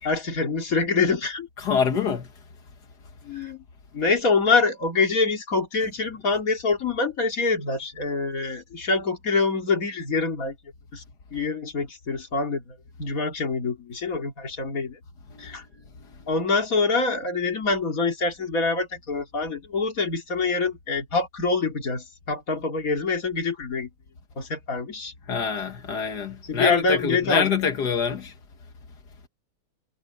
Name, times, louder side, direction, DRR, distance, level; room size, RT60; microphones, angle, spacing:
voice 1, 0.0-1.5 3.2-3.6 3.9-10.5 10.9-11.0 11.3-15.0 15.4-15.6 16.3-23.9 24.4-25.1 26.4-27.5, left 4 dB, 60° left, 3.1 m, -25 dB
voice 2, 1.6-2.3 25.3-28.3, left 6 dB, 85° left, 2.2 m, -25 dB
omnidirectional pair, 1.7 m